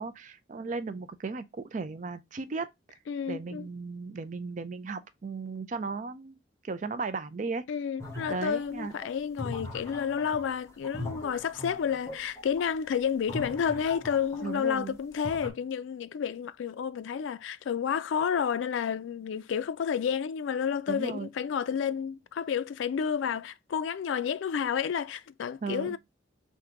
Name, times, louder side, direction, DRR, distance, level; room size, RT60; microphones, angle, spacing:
voice 1, 0.0-3.0 3.3-6.4 6.6-7.7 8.3-9.0 14.4-15.0 20.9-21.3 25.6-25.9, right 4 dB, 40° right, 0.4 m, -36 dB
voice 2, 3.1-3.7 7.7-26.0, left 7 dB, 75° left, 0.3 m, -30 dB
sound 1, 8.0-14.7 15.0-15.5, left 2 dB, 15° left, 0.9 m, -41 dB
3.7 x 2.6 x 4.4 m
head